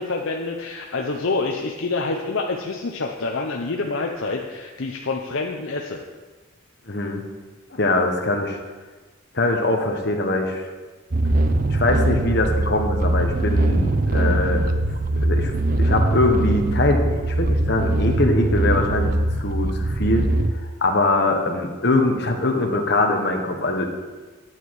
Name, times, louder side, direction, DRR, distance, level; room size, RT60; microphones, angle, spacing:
voice 1, 0.0-6.0, left 3 dB, 70° left, 1 dB, 0.8 m, -27 dB
voice 2, 6.9-7.2 7.7-8.6 9.3-10.7 11.7-14.6 15.2-20.3 20.6-23.9, left 2 dB, 50° left, 2 dB, 1.4 m, -22 dB
sound 1, 11.1-20.5, right 1 dB, 40° right, 0.6 m, -21 dB
9.7 x 9.7 x 4.8 m, 1.3 s
head